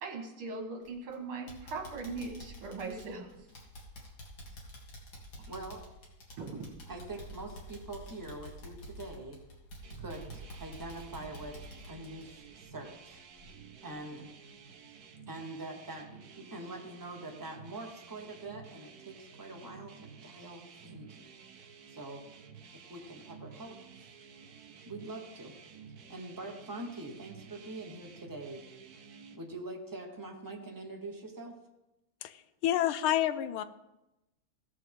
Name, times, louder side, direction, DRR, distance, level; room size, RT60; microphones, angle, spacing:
voice 1, 0.0-3.5 6.4-6.7, right 3 dB, 75° right, 2 dB, 2.5 m, -40 dB
sound 1, 0.8-1.1 1.5-13.1 13.4-13.5 14.0-14.1, equal, 60° left, 2.6 m, -49 dB
voice 2, 5.5-5.9 6.9-9.4 10.0-11.6 11.9-13.2 13.8-14.3 15.3-21.2 21.9-22.2 22.7-23.9 24.8-25.6 26.1-28.6 29.3-31.6, right 2 dB, 15° right, 1 dB, 0.7 m, -44 dB
sound 2, 9.8-29.4, right 6 dB, 60° right, 1.1 m, -53 dB
voice 3, 32.2-33.6, left 12 dB, 80° left, 12 dB, 1.4 m, -29 dB
16.5 x 6.8 x 3.6 m, 0.96 s
omnidirectional pair, 2.4 m